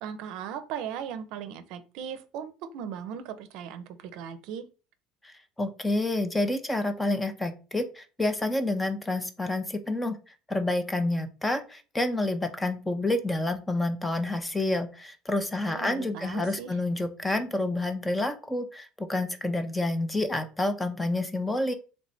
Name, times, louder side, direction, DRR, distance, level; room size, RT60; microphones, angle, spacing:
voice 1, 0.0-4.6 15.7-16.8, right 8 dB, 60° right, 11 dB, 0.5 m, -38 dB
voice 2, 5.2-10.2 10.5-21.7, left 2 dB, 10° left, 9 dB, 0.4 m, -29 dB
3.2 x 3.2 x 3.9 m, 0.35 s
cardioid pair, 160°, 0 cm